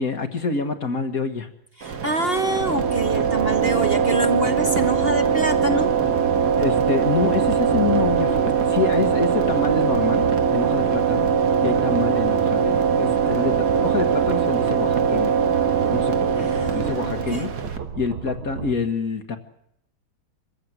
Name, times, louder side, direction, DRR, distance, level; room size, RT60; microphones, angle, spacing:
voice 1, 0.0-1.5 6.6-11.3 11.6-15.4 15.9-17.5 17.9-19.4, left 5 dB, 45° left, 7 dB, 1.8 m, -26 dB
voice 2, 1.8-5.9 8.3-8.4 16.4-17.5, right 1 dB, 30° right, 6 dB, 1.4 m, -26 dB
sound 1, 1.8-17.8, right 7 dB, 55° right, 2.0 m, -21 dB
sound 2, 2.6-18.7, right 7 dB, 85° right, 2.2 m, -34 dB
25.5 x 15.0 x 9.6 m, 0.77 s
omnidirectional pair, 2.2 m